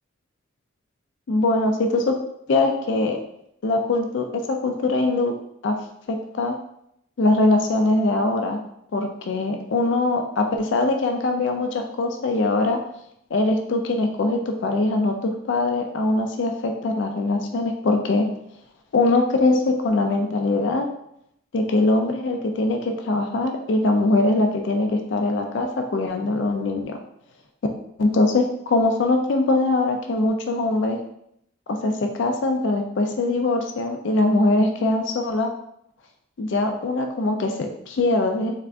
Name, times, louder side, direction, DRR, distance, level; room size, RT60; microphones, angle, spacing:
voice 1, 1.3-2.1 2.5-3.2 3.6-5.3 5.6-5.8 6.1-6.5 7.2-8.6 8.9-12.8 13.3-18.3 18.9-20.9 21.5-27.0 28.0-31.0 31.8-35.5 36.4-38.5, left 2 dB, 65° left, 4 dB, 0.4 m, -22 dB
3.6 x 3.3 x 2.5 m, 0.75 s
head